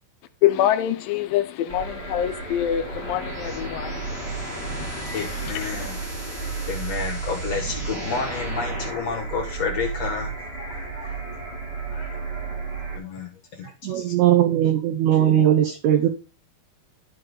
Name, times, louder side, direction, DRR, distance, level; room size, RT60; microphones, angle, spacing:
voice 1, 0.4-5.9 6.6-6.7, left 11 dB, 80° left, 2.2 m, -26 dB
sound 1, 1.7-13.0, right 5 dB, 40° right, 0.8 m, -33 dB
sound 2, 2.8-9.2, left 1 dB, 10° right, 1.2 m, -36 dB
voice 2, 5.1-6.0 6.7-11.3 11.9-12.2 13.0-14.1, left 5 dB, 50° left, 2.4 m, -31 dB
voice 3, 13.8-16.1, right 11 dB, 85° right, 1.6 m, -19 dB
13.0 x 4.6 x 3.8 m
omnidirectional pair, 4.3 m